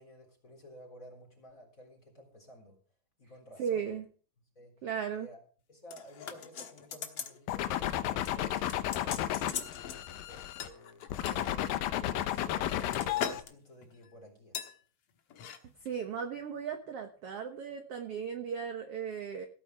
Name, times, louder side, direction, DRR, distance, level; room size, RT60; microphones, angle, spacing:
voice 1, 0.0-2.8 3.2-3.9 4.6-4.9 5.1-5.4 5.7-9.6 9.9-14.7, equal, 25° left, 2 dB, 4.0 m, -54 dB
voice 2, 3.6-4.0 4.8-5.3 15.8-19.5, right 7 dB, 60° right, 5 dB, 1.7 m, -36 dB
sound 1, 5.9-7.4 7.7-8.0 8.2-10.0 10.6-11.5 12.2-13.5 13.8-14.0 14.5-14.7 15.3-15.6 15.9-16.0, left 8 dB, 55° left, 1.9 m, -40 dB
sound 2, 7.5-10.7 11.1-13.4, left 12 dB, 85° left, 2.7 m, -33 dB
17.0 x 9.2 x 4.7 m, 0.41 s
omnidirectional pair, 3.9 m